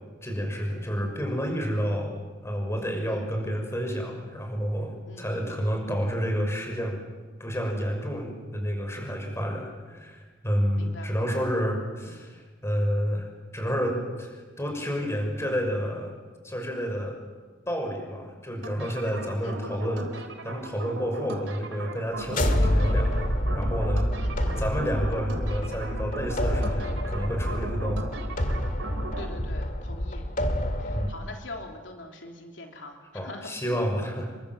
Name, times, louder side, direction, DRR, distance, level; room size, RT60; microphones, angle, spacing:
voice 1, 0.2-2.1 2.4-7.0 7.4-13.3 13.5-16.1 16.4-17.2 17.7-23.1 23.5-24.1 24.6-28.1 30.9-31.1 33.1-34.3, equal, 15° left, 3 dB, 6.1 m, -30 dB
voice 2, 5.1-5.7 10.8-11.6 12.0-12.4 19.4-19.9 24.2-24.7 29.2-30.2 30.8-33.5, left 2 dB, 70° left, 2 dB, 3.2 m, -44 dB
sound 1, 18.6-29.3, right 2 dB, 85° right, 3.4 m, -38 dB
sound 2, 22.2-31.1, equal, 45° left, 2.2 m, -27 dB
30.0 x 23.0 x 7.7 m, 1.4 s
head